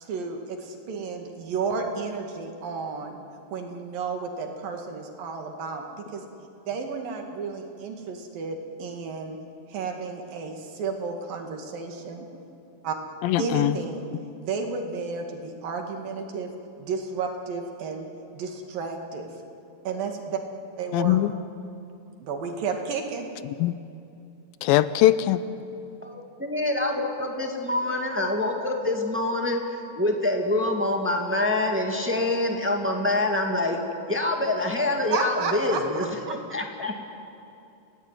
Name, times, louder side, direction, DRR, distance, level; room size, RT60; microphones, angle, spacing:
voice 1, 0.0-3.2 3.5-6.2 6.7-9.4 9.7-12.3 12.8-13.0 13.4-14.1 14.4-16.5 16.8-18.1 18.3-19.3 19.9-20.4 20.8-21.2 22.2-23.3 35.1-35.8 36.3-36.4, right 5 dB, 75° right, 3 dB, 3.9 m, -32 dB
voice 2, 13.2-13.8 20.9-21.3 23.6-23.7 24.6-25.4, left 14 dB, 90° left, 14 dB, 2.6 m, -21 dB
voice 3, 26.0-33.8 34.1-37.1, left 2 dB, 5° right, 2 dB, 1.6 m, -26 dB
29.0 x 18.5 x 9.3 m, 2.7 s
omnidirectional pair, 4.0 m